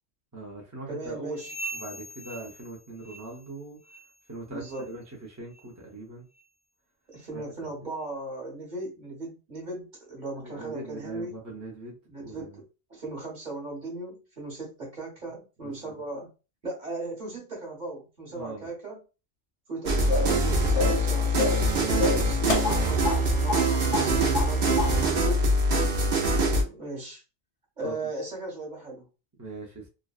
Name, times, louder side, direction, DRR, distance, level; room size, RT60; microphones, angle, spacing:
voice 1, 0.3-1.3 1.7-3.8 4.3-6.3 7.3-7.7 10.4-12.6 15.6-16.0 18.3-18.7 24.9-25.3 27.8-28.0 29.4-29.9, right 2 dB, 20° right, -2 dB, 0.5 m, -41 dB
voice 2, 0.9-1.5 4.5-4.9 7.1-11.4 12.1-12.6 12.9-16.3 16.6-19.0 19.7-25.4 26.3-27.2 27.8-29.1, right 2 dB, 45° right, -2 dB, 1.2 m, -37 dB
sound 1, 1.3-3.6 3.8-4.2 4.7-4.9 5.5-5.7 6.4-6.5 7.2-7.3, right 2 dB, 55° left, 0.6 m, -41 dB
sound 2, 19.8-26.6, right 1 dB, 60° right, 0.8 m, -24 dB
sound 3, 20.1-20.4 20.7-21.1 21.4-21.7 22.0-23.2 23.5-23.7 23.9-24.5 24.8-24.9, left 4 dB, 80° left, 1.0 m, -28 dB
2.5 x 2.1 x 2.3 m, 0.31 s
omnidirectional pair, 1.2 m